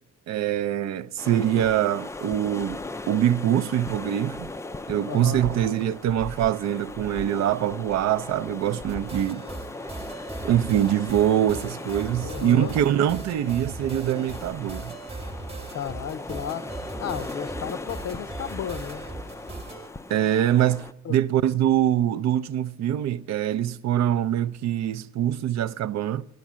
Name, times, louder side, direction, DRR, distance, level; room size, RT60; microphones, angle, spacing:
voice 1, 0.3-2.8 3.1-4.5 4.9-9.4 10.4-14.9 20.1-26.2, right 11 dB, 65° right, 0.5 m, -24 dB
sound 1, 1.2-20.9, left 2 dB, 10° left, 0.3 m, -38 dB
voice 2, 5.1-5.4 12.2-12.7 15.7-16.7 17.0-19.0 21.0-21.2, left 9 dB, 55° left, 0.6 m, -33 dB
sound 2, 8.9-19.9, right 3 dB, 20° right, 1.1 m, -39 dB
10.5 x 9.1 x 7.2 m
cardioid pair, 90°, 30 cm